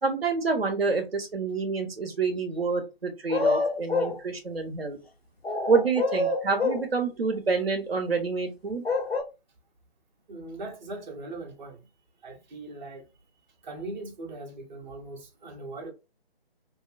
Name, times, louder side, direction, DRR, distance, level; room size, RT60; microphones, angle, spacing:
voice 1, 0.0-5.0 5.7-8.8, right 4 dB, 75° right, 0.8 m, -27 dB
sound 1, 3.3-4.2 5.4-6.9 8.8-9.2, left 3 dB, 85° left, 0.7 m, -26 dB
voice 2, 10.3-11.8 12.2-13.0 13.6-15.9, right 2 dB, 50° right, 0.8 m, -40 dB
2.6 x 2.1 x 2.5 m
figure-of-eight pair, 140°, 30 cm